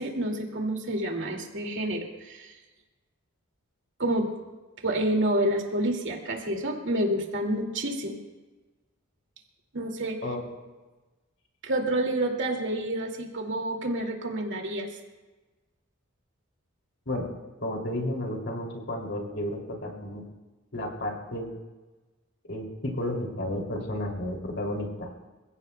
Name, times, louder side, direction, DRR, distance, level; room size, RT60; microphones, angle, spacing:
voice 1, 0.0-2.5 4.0-4.3 4.8-8.2 9.7-10.2 11.6-14.9, right 1 dB, 60° right, 2 dB, 2.3 m, -28 dB
voice 2, 17.6-20.2 20.7-21.5 22.5-25.1, left 1 dB, 60° left, 0 dB, 2.9 m, -32 dB
28.0 x 16.5 x 2.3 m, 1.2 s
head